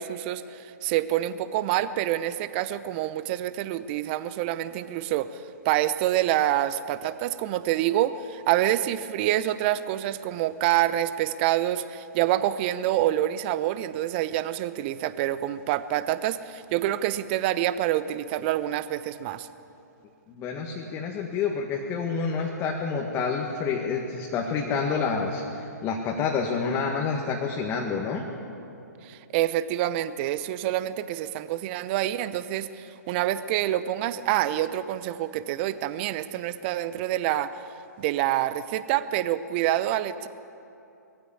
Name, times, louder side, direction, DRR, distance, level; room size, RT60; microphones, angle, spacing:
voice 1, 0.0-19.5 29.0-37.6 38.0-40.3, right 13 dB, 35° right, 14 dB, 0.8 m, -27 dB
voice 2, 20.3-28.2, left 5 dB, 25° left, 0 dB, 1.9 m, -28 dB
21.0 x 15.0 x 8.6 m, 2.8 s
figure-of-eight pair, 125°, 10 cm